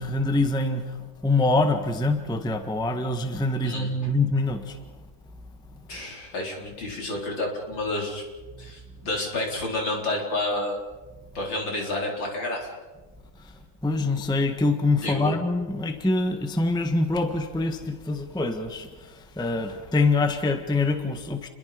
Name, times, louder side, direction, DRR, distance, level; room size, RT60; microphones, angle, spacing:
voice 1, 0.0-4.8 8.6-8.7 13.8-21.5, left 2 dB, ahead, 7 dB, 1.3 m, -25 dB
voice 2, 5.9-8.2 8.6-10.8 11.3-12.7 15.0-15.3, left 2 dB, 70° left, 0 dB, 5.0 m, -30 dB
29.5 x 22.0 x 5.3 m, 1.3 s
omnidirectional pair, 2.1 m